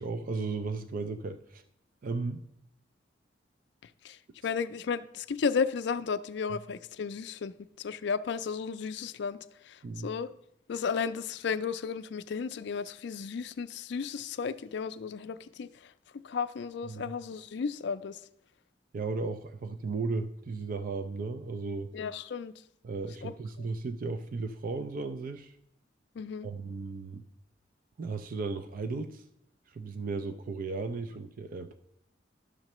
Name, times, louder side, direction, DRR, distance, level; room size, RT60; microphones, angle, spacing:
voice 1, 0.0-1.6 2.0-2.4 9.8-10.1 16.9-17.1 18.9-21.9 22.8-25.5 26.4-27.2 28.0-29.2 29.7-31.7, right 3 dB, 50° right, 0.4 m, -35 dB
voice 2, 4.4-9.4 9.6-10.3 10.7-15.9 16.2-18.2 21.9-22.5 23.2-23.3 23.6-23.7 26.2-26.5, left 6 dB, 65° left, 0.4 m, -34 dB
11.0 x 6.6 x 3.0 m
head